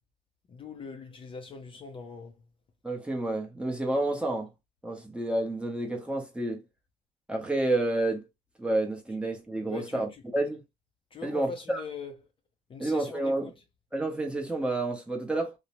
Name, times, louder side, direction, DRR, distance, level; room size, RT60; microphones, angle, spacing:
voice 1, 0.5-2.3 9.6-10.2 11.1-12.1 12.7-13.5, left 5 dB, 30° left, 0.5 m, -41 dB
voice 2, 2.8-4.5 4.8-6.6 7.3-8.2 8.6-10.6 11.2-11.8 12.8-13.5 13.9-15.5, right 2 dB, 5° right, 0.7 m, -29 dB
2.7 x 2.0 x 2.9 m
cardioid pair, 110°, 17 cm